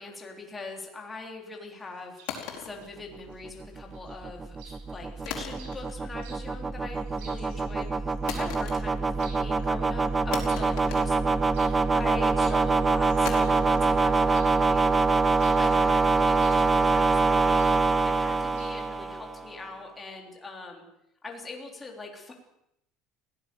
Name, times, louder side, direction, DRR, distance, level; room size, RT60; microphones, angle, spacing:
voice 1, 0.0-7.9 8.3-14.9 15.6-17.6 18.0-20.8 21.2-22.3, left 3 dB, 10° left, 1 dB, 3.4 m, -42 dB
Chirp tweet, 1.8-18.9, right 5 dB, 80° right, 7.5 m, -56 dB
sound 1, 2.3-3.7 5.3-6.1 6.4-6.9 8.3-9.2 9.5-9.6 10.3-11.8 13.2-16.3, left 9 dB, 60° left, 4.7 m, -41 dB
sound 2, 3.3-19.5, right 3 dB, 15° right, 0.9 m, -25 dB
22.0 x 17.0 x 6.9 m, 0.81 s
cardioid pair, 170°, 0 cm